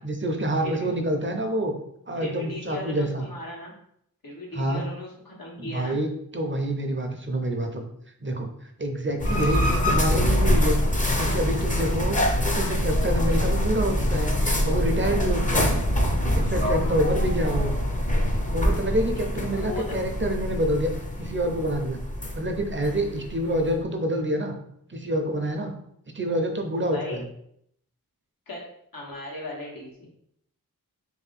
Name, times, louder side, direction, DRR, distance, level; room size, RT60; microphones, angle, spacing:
voice 1, 0.0-1.7 2.1-3.2 4.5-4.8 5.6-6.1 6.3-7.9 8.2-8.5 8.8-10.8 11.2-12.2 12.5-14.3 14.6-15.8 16.3-17.7 18.5-20.9 21.2-22.0 22.3-24.5 24.9-25.7 26.1-27.0, right 1 dB, 35° right, 4 dB, 0.6 m, -27 dB
voice 2, 0.6-0.9 2.2-3.7 4.2-6.0 19.5-20.0 26.8-27.2 28.5-28.7 28.9-30.1, left 2 dB, 80° left, -3 dB, 1.2 m, -37 dB
sound 1, 9.2-23.8, left 1 dB, 25° left, 0.6 m, -25 dB
3.1 x 2.8 x 4.1 m, 0.71 s
wide cardioid pair, 55°, 34 cm